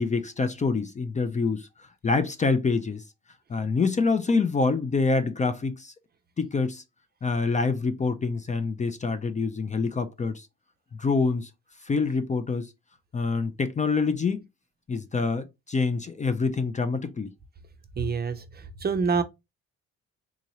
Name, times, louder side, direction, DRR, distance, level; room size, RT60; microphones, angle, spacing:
voice 1, 0.0-1.7 2.0-3.0 3.5-5.9 6.4-6.8 7.2-10.5 10.9-11.5 11.8-12.7 13.1-14.4 14.9-17.3, left 4 dB, 25° left, 0.4 m, -26 dB
voice 2, 18.0-19.2, right 5 dB, 30° right, 0.6 m, -27 dB
3.7 x 2.9 x 2.7 m
cardioid pair, 90°, 30 cm